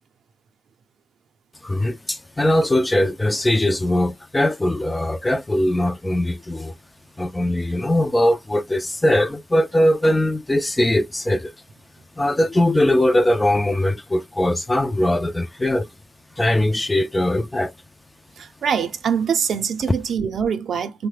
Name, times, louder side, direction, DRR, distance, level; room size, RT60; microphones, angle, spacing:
voice 1, 1.6-6.7 7.2-11.5 12.2-15.9 16.4-17.7, left 1 dB, 15° left, 0.3 m, -20 dB
voice 2, 18.4-21.1, right 7 dB, 60° right, 0.5 m, -24 dB
3.1 x 2.1 x 3.2 m
cardioid pair, 90°, 0 cm